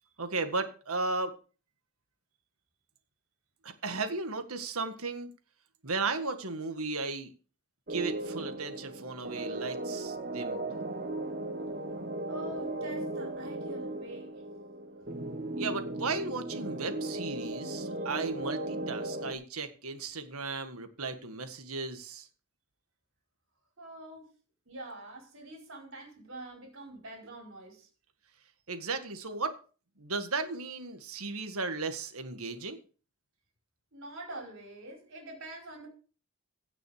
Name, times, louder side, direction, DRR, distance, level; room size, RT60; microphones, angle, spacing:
voice 1, 0.2-1.3 3.6-5.3 5.8-7.3 7.9-10.7 15.6-22.3 28.7-29.6 30.0-32.8, right 3 dB, 80° right, 1.7 m, -35 dB
sound 1, 7.9-19.3, right 2 dB, 45° right, 1.3 m, -37 dB
voice 2, 12.3-14.4 23.8-24.3 24.6-27.9 33.9-35.9, right 1 dB, 60° right, 4.7 m, -45 dB
16.5 x 6.2 x 5.0 m
head